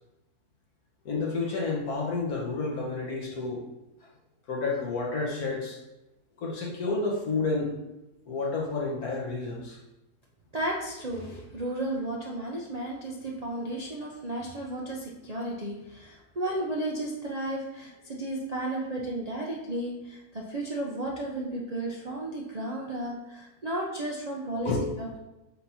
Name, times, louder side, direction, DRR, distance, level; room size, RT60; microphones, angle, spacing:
voice 1, 1.1-3.7 4.5-5.8 6.4-7.7 8.3-9.8 24.7-24.8, left 3 dB, 65° left, -2 dB, 1.7 m, -30 dB
voice 2, 10.5-24.7 25.0-25.2, right 1 dB, 40° right, -3 dB, 0.5 m, -33 dB
6.4 x 2.9 x 5.5 m, 0.98 s
omnidirectional pair, 1.7 m